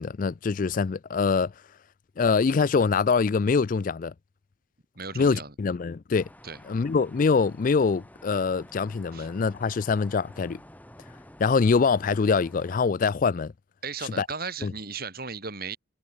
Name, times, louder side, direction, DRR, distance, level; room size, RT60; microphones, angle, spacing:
voice 1, 0.0-1.5 2.2-4.1 5.2-6.3 6.7-10.6 11.4-13.5 14.0-14.3 14.6-14.7, left 5 dB, 45° left, 0.4 m, -24 dB
voice 2, 5.0-5.5 6.4-6.6 9.1-9.3 13.8-15.8, right 5 dB, 50° right, 4.5 m, -36 dB
sound 1, 6.1-12.8, left 1 dB, 10° left, 5.7 m, -50 dB
head